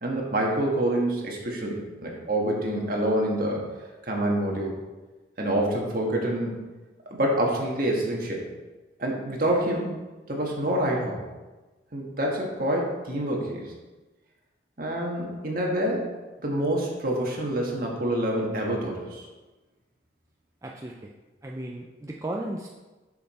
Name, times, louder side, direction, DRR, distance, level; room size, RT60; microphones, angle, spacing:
voice 1, 0.0-3.6 4.0-4.8 5.4-6.6 7.1-8.4 9.0-9.9 10.3-11.2 11.9-13.7 14.8-16.1 16.4-19.2, right 1 dB, 50° right, -1 dB, 1.5 m, -27 dB
voice 2, 20.6-21.1 21.4-22.7, right 1 dB, 15° right, -1 dB, 0.4 m, -35 dB
6.9 x 6.6 x 4.3 m, 1.2 s
head